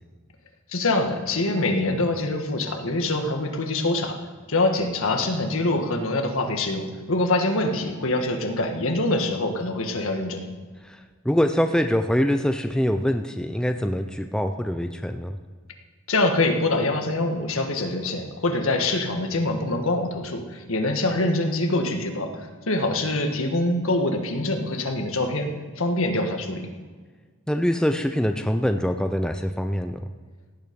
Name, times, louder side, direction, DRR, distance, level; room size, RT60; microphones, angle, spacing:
voice 1, 0.7-4.2 4.5-10.4 16.1-26.6, left 2 dB, 70° left, 4 dB, 1.6 m, -24 dB
voice 2, 10.8-15.3 27.5-30.0, equal, 5° left, 6 dB, 0.4 m, -24 dB
17.0 x 9.6 x 5.3 m, 1.5 s
head